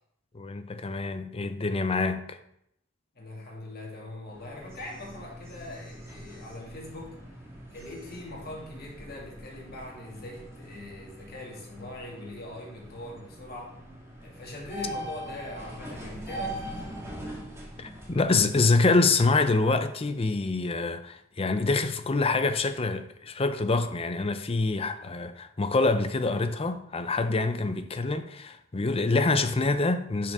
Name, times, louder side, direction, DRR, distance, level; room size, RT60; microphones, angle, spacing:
voice 1, 0.3-2.4 17.8-30.3, left 3 dB, 30° left, 0.6 m, -26 dB
voice 2, 3.1-7.2 7.7-13.8 14.2-16.9, left 1 dB, 50° left, 2.4 m, -42 dB
sound 1, 4.2-18.7, right 1 dB, 15° right, 1.7 m, -42 dB
10.5 x 5.7 x 3.6 m
head